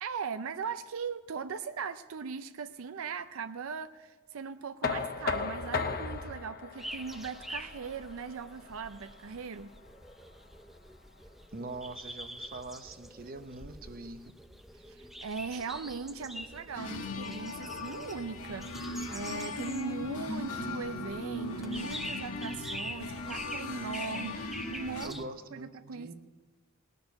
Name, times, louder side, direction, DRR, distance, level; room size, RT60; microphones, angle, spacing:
voice 1, 0.0-9.7 14.9-25.2 25.5-26.1, right 5 dB, 65° right, 9 dB, 0.5 m, -39 dB
Knock, 4.8-10.6, left 5 dB, 45° left, 0.9 m, -37 dB
sound 1, 6.8-25.3, equal, ahead, 0.6 m, -46 dB
voice 2, 11.5-14.3 25.0-26.1, right 2 dB, 45° right, 9 dB, 0.9 m, -43 dB
sound 2, 16.7-25.1, left 2 dB, 85° left, 1.5 m, -38 dB
19.5 x 6.7 x 9.4 m, 1.3 s
head